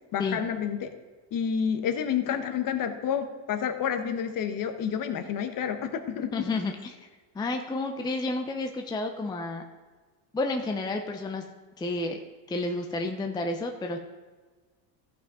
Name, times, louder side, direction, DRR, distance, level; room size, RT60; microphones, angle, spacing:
voice 1, 0.1-0.9 1.3-6.4, left 8 dB, 45° left, 8 dB, 1.1 m, -29 dB
voice 2, 6.3-7.0 7.3-9.6 10.3-11.4 11.8-12.2 12.5-14.0, left 2 dB, 10° left, 4 dB, 0.6 m, -30 dB
14.5 x 5.7 x 3.7 m, 1.4 s
supercardioid pair, 120°, 48 cm